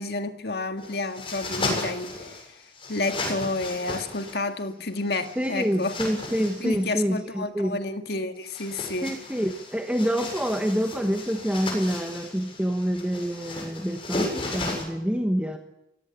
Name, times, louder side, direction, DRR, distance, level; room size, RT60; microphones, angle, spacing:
voice 1, 0.0-2.6 2.9-6.1 6.6-9.1, left 2 dB, 65° left, 1.9 m, -30 dB
sound 1, 0.8-2.4 2.7-4.4 5.1-6.7 8.3-14.8, left 2 dB, 30° left, 7.3 m, -34 dB
voice 2, 5.4-7.8 9.0-15.6, equal, 5° right, 1.4 m, -27 dB
24.5 x 17.5 x 8.4 m
head